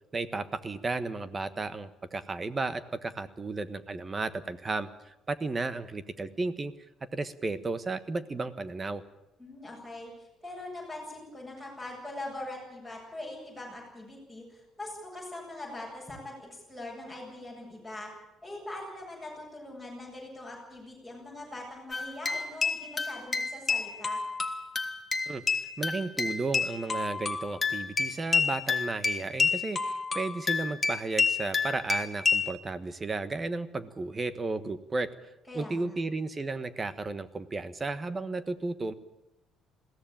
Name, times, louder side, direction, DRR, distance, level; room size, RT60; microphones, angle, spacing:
voice 1, 0.1-6.7 7.1-9.0 25.3-35.1 35.5-38.9, right 3 dB, 20° right, 13 dB, 1.3 m, -34 dB
voice 2, 9.4-18.1 18.4-24.2 35.5-36.0, left 2 dB, 5° right, -2 dB, 7.9 m, -42 dB
sound 1, 21.9-32.5, left 5 dB, 20° left, 1.6 m, -29 dB
21.5 x 16.0 x 9.0 m, 0.95 s
cardioid pair, 140°, 0 cm